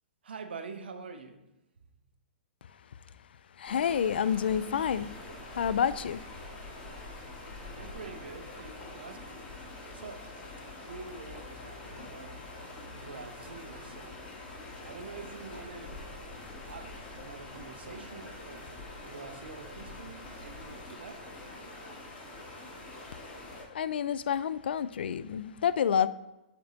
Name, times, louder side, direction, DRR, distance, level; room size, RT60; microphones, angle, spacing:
voice 1, 0.2-1.4 7.7-9.5 9.9-10.3 10.8-12.4 12.9-14.2 14.8-16.0 16.6-17.0 17.2-18.7 19.0-21.2, right 4 dB, 80° right, 7 dB, 0.8 m, -46 dB
voice 2, 3.6-5.1 5.5-6.2 23.7-26.1, left 8 dB, 75° left, 16 dB, 0.4 m, -28 dB
sound 1, 3.7-23.6, left 2 dB, 25° left, 1.8 m, -45 dB
7.6 x 4.5 x 3.9 m, 0.95 s
hypercardioid pair, 130°, 5 cm